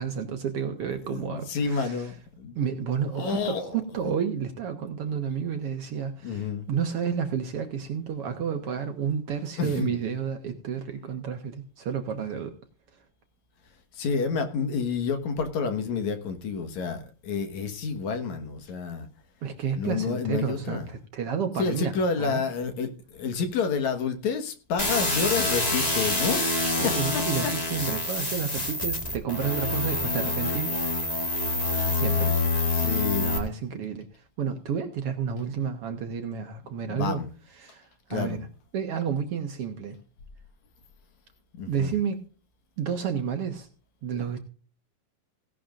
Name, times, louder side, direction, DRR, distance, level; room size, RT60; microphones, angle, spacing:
voice 1, 0.0-2.1 2.5-12.5 19.4-22.4 26.8-30.8 31.9-32.4 32.7-32.9 33.2-34.1 34.4-37.2 37.6-38.5 38.7-40.0 41.7-42.2 42.8-43.7 44.0-44.4, right 7 dB, 60° right, 6 dB, 1.5 m, -31 dB
voice 2, 1.1-2.6 3.1-4.1 6.2-6.7 9.6-9.9 13.9-19.1 19.8-20.9 21.6-26.4 26.8-27.5 32.7-33.3 36.9-37.3 38.1-38.4 41.6-42.0, left 5 dB, 60° left, 8 dB, 2.6 m, -29 dB
sound 1, 24.8-33.4, left 2 dB, 30° left, 0.7 m, -26 dB
17.5 x 11.0 x 2.5 m, 0.39 s
omnidirectional pair, 3.9 m